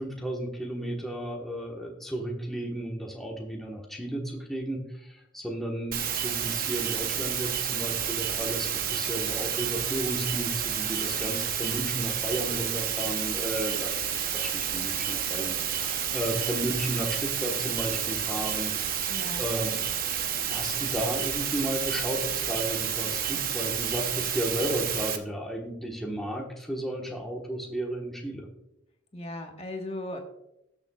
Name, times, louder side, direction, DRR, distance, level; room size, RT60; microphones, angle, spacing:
voice 1, 0.0-14.0 14.3-19.1 19.4-19.8 20.5-28.5, right 1 dB, ahead, -1 dB, 1.2 m, -33 dB
sound 1, 5.9-25.2, right 9 dB, 45° right, 0.8 m, -30 dB
voice 2, 19.1-19.4 29.1-30.2, left 1 dB, 30° left, 3 dB, 1.3 m, -37 dB
18.5 x 6.9 x 2.3 m, 0.86 s
head